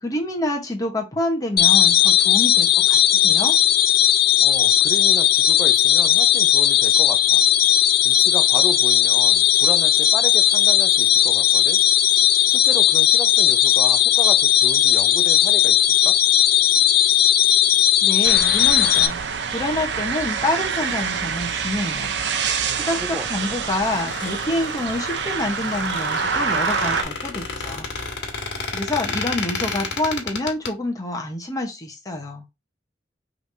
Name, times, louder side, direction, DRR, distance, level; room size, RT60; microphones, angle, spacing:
voice 1, 0.0-3.5 18.0-19.2 19.5-22.1 22.7-27.9 28.7-32.4, left 1 dB, 20° left, 1.0 m, -27 dB
sound 1, 1.6-19.1, left 11 dB, 55° left, 0.6 m, -17 dB
voice 2, 4.4-7.4 8.0-11.8 12.5-15.8 16.0-16.2 22.7-23.5, equal, 10° right, 0.7 m, -33 dB
sound 2, 18.2-27.0, right 6 dB, 70° right, 0.6 m, -26 dB
Squeak, 23.5-30.7, left 4 dB, 80° left, 1.6 m, -31 dB
5.1 x 3.3 x 2.6 m
head